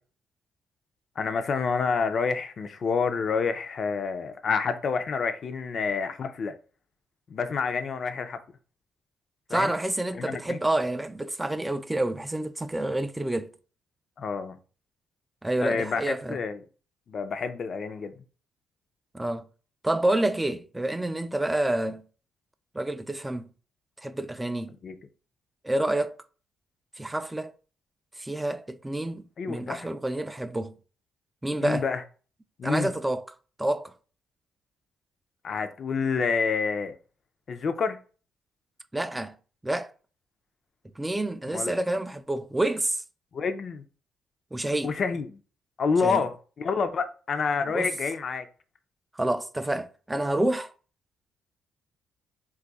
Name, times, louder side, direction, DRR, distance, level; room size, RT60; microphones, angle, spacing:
voice 1, 1.2-6.5 7.3-8.4 9.5-9.8 10.1-10.6 14.2-14.6 15.6-16.6 17.1-18.2 24.8-25.0 29.4-29.9 31.6-32.0 32.6-32.9 35.4-37.0 37.5-38.0 41.5-41.7 43.3-43.8 44.8-45.4 45.8-48.5, left 5 dB, 50° left, 0.4 m, -28 dB
voice 2, 9.5-13.5 15.4-16.4 19.1-19.5 19.8-22.0 22.7-23.5 24.0-24.8 25.6-26.2 27.0-27.5 28.2-30.8 31.4-31.8 32.6-33.2 33.6-33.9 38.9-39.3 39.6-39.9 41.0-43.0 44.5-44.9 46.0-46.2 47.7-47.9 49.2-50.7, right 1 dB, 10° right, 0.3 m, -28 dB
2.6 x 2.4 x 3.9 m
cardioid pair, 90°, 0 cm